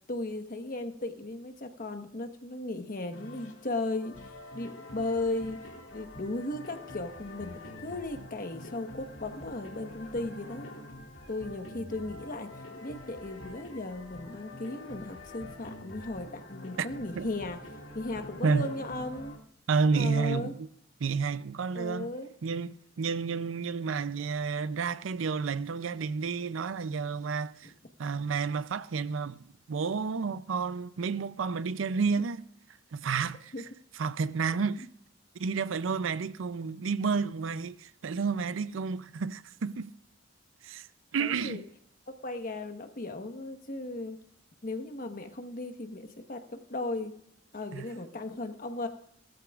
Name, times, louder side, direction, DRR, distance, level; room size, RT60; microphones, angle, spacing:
voice 1, 0.1-5.6 5.9-10.7 11.3-12.5 12.8-17.6 17.9-19.4 19.9-20.5 21.7-22.3 33.5-33.6 41.2-41.6 42.2-44.2 44.6-47.1 47.5-48.9, left 2 dB, 45° left, 1.2 m, -36 dB
sound 1, 3.1-19.4, left 1 dB, 85° left, 2.1 m, -46 dB
voice 2, 19.7-20.7 21.0-22.1 22.4-27.7 28.0-32.5 32.9-33.5 34.0-34.9 35.4-39.9 40.6-40.9 41.1-41.6 47.7-47.9, right 5 dB, 85° right, 0.5 m, -30 dB
17.0 x 14.0 x 2.4 m
head